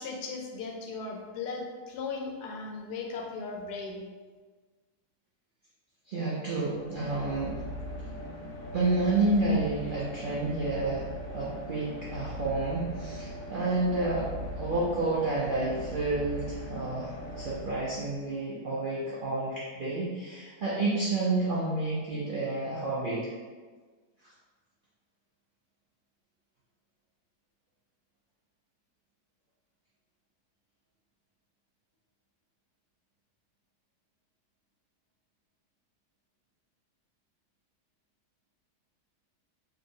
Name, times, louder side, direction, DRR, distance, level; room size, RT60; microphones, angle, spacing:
voice 1, 0.0-4.1, left 4 dB, 80° left, 1 dB, 1.1 m, -37 dB
voice 2, 6.1-7.6 8.7-11.0 11.3-23.3, right 2 dB, 90° right, -7 dB, 0.4 m, -30 dB
sound 1, 6.5-18.4, left 1 dB, 55° left, 1.0 m, -40 dB
3.0 x 2.7 x 2.6 m, 1.4 s
omnidirectional pair, 1.7 m